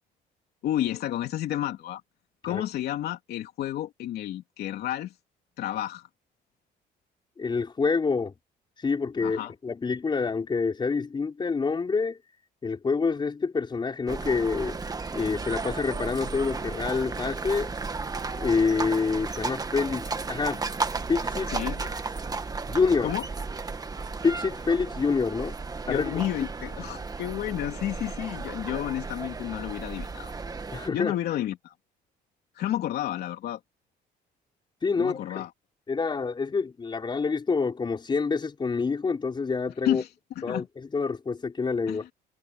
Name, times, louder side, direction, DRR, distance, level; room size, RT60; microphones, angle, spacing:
voice 1, 0.6-2.0 2.4-5.1 5.6-6.1 9.2-9.5 21.5-21.8 23.0-23.2 25.9-30.3 30.9-31.7 32.5-33.6 35.0-35.5 39.8-40.1 40.3-40.7 41.9-42.0, left 12 dB, 70° left, 3.3 m, -31 dB
voice 2, 7.4-8.3 8.8-12.2 12.6-14.8 15.1-17.7 18.4-20.6 21.1-21.5 22.7-23.1 24.2-25.6 25.9-26.1 30.7-31.1 34.8-35.4 35.9-40.0 40.4-42.1, left 4 dB, 25° left, 4.9 m, -27 dB
sound 1, 14.1-30.9, right 4 dB, 20° right, 1.6 m, -34 dB
cardioid pair, 110°, 17 cm